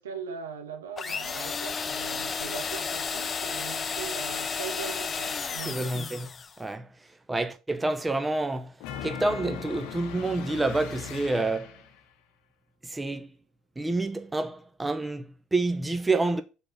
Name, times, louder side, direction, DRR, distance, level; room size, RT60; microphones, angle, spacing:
voice 1, 0.0-5.9, right 6 dB, 80° right, 1.0 m, -40 dB
sound 1, 1.0-6.6, left 5 dB, 30° left, 0.6 m, -32 dB
voice 2, 5.6-6.3 6.6-6.9 7.3-11.8 12.8-13.3 13.8-16.4, right 2 dB, 15° right, 0.9 m, -28 dB
sound 2, 8.8-12.0, left 8 dB, 65° left, 0.9 m, -39 dB
6.5 x 3.8 x 6.2 m
hypercardioid pair, 65°, 0 cm